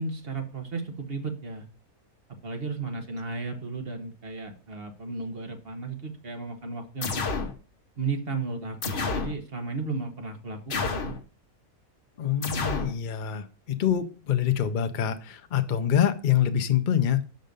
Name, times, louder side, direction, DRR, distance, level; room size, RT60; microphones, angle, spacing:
voice 1, 0.0-1.6 2.4-7.4 8.0-11.2, right 3 dB, 45° right, 5 dB, 1.4 m, -34 dB
sound 1, 7.0-7.5 8.8-9.4 10.7-11.2 12.4-12.9, left 4 dB, 45° left, 1.0 m, -29 dB
voice 2, 12.2-17.2, left 9 dB, 60° left, 9 dB, 0.5 m, -25 dB
6.4 x 5.3 x 5.2 m, 0.37 s
omnidirectional pair, 1.5 m